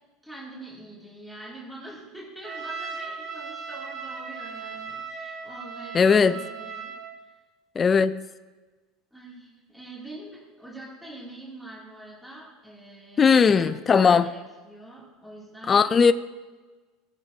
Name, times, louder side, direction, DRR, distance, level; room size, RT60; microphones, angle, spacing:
voice 1, 0.2-6.9 7.2-7.3 9.1-16.0, right 1 dB, ahead, 2.7 m, -44 dB
Trumpet, 2.4-7.2, right 5 dB, 35° right, 1.4 m, -37 dB
voice 2, 5.9-6.3 7.8-8.2 13.2-14.2 15.7-16.1, left 6 dB, 20° left, 0.3 m, -18 dB
17.5 x 10.5 x 2.8 m
supercardioid pair, 150°, 0 cm